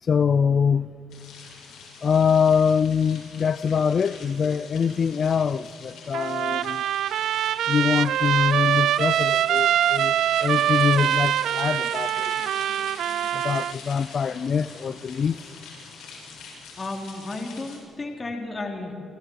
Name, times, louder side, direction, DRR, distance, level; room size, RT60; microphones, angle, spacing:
voice 1, 0.0-0.9 2.0-6.8 7.7-12.3 13.3-15.4, left 6 dB, 45° left, 16 dB, 0.5 m, -24 dB
sound 1, 1.1-17.8, left 4 dB, 85° left, 7.7 m, -44 dB
Trumpet, 6.1-13.7, right 11 dB, 75° right, 0.4 m, -23 dB
voice 2, 16.8-18.9, left 2 dB, 30° left, 2 dB, 3.6 m, -33 dB
27.5 x 26.5 x 4.8 m, 2.8 s
cardioid pair, 90°, 0 cm